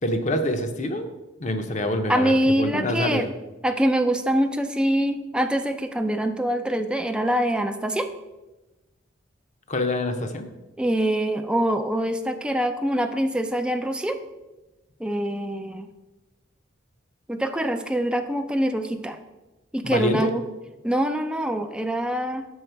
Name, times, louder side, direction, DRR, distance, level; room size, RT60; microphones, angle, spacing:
voice 1, 0.0-1.1 1.4-3.3 9.7-10.5 19.8-20.3, left 1 dB, 35° left, 6 dB, 0.7 m, -26 dB
voice 2, 2.1-3.3 3.6-8.1 10.8-14.2 15.0-15.9 17.3-19.2 19.7-20.4 20.8-22.5, right 1 dB, 5° right, 6 dB, 0.4 m, -24 dB
6.4 x 5.9 x 4.5 m, 1.1 s
head